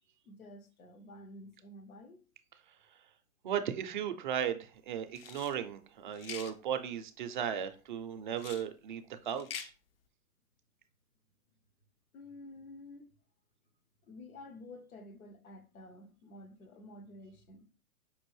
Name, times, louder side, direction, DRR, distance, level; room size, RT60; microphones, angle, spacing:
voice 1, 0.2-2.2 12.1-13.1 14.0-17.7, left 1 dB, 75° left, 1.0 m, -51 dB
voice 2, 3.4-9.7, right 9 dB, 35° right, 0.4 m, -36 dB
sound 1, 5.1-5.5 6.1-6.5 8.3-8.7 9.3-9.7, left 8 dB, 45° left, 0.4 m, -44 dB
5.3 x 2.5 x 3.0 m
hypercardioid pair, 130°, 43 cm